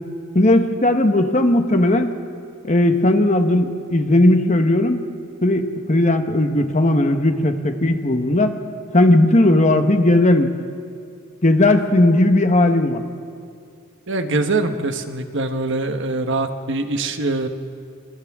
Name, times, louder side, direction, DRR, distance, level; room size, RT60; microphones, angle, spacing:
voice 1, 0.3-2.1 2.6-5.0 5.4-8.5 8.9-10.5 11.4-13.0, left 1 dB, 35° left, 6 dB, 1.2 m, -16 dB
voice 2, 14.1-17.5, right 2 dB, 55° right, 7 dB, 1.2 m, -23 dB
29.0 x 26.5 x 3.7 m, 2.3 s
head